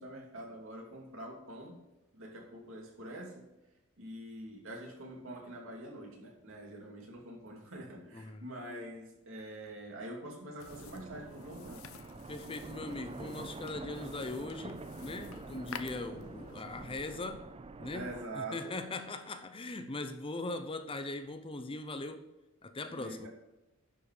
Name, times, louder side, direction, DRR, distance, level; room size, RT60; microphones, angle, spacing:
voice 1, 0.0-1.8 2.1-3.5 4.0-11.8 17.9-18.8 22.9-23.3, right 1 dB, 65° right, 2.7 m, -45 dB
voice 2, 8.1-8.5 12.3-17.5 17.8-22.3 22.6-23.3, left 2 dB, 25° left, 0.7 m, -40 dB
sound 1, 10.6-17.0, left 6 dB, 70° left, 0.7 m, -51 dB
sound 2, 10.7-18.3, right 3 dB, 25° right, 0.5 m, -46 dB
11.0 x 5.8 x 4.9 m
head